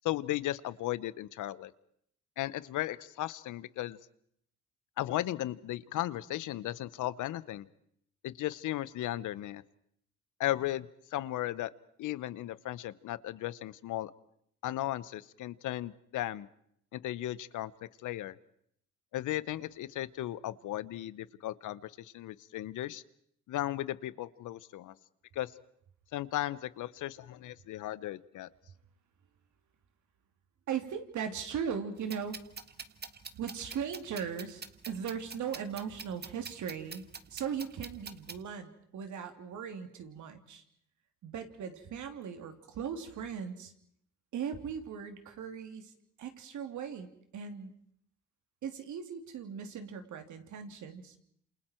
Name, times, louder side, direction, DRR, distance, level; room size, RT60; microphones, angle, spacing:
voice 1, 0.0-1.7 2.4-4.0 5.0-7.7 8.2-9.6 10.4-11.7 12.0-14.1 14.6-16.5 16.9-17.7 18.0-18.3 19.1-23.0 23.5-24.9 25.3-25.5 26.1-28.5, left 14 dB, 80° left, 17 dB, 0.9 m, -36 dB
voice 2, 30.7-32.4 33.3-37.0 37.3-40.6 41.2-43.7 44.3-45.9 46.2-47.1 47.3-47.7 48.6-51.1, right 7 dB, 75° right, 6 dB, 3.0 m, -38 dB
sound 1, 32.0-38.4, right 5 dB, 35° right, 1.6 m, -46 dB
28.0 x 28.0 x 4.5 m, 0.69 s
cardioid pair, 90°, 30 cm